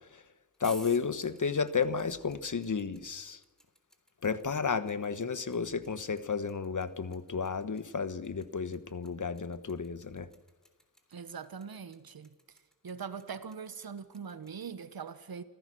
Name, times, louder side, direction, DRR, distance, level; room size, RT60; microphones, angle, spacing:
sound 1, 0.5-14.6, equal, ahead, 3.5 m, -54 dB
voice 1, 0.6-3.4 4.2-10.3, left 5 dB, 55° left, 1.3 m, -32 dB
voice 2, 11.1-12.4 12.8-15.4, right 6 dB, 80° right, 1.4 m, -42 dB
27.5 x 15.5 x 6.3 m
cardioid pair, 45°, 36 cm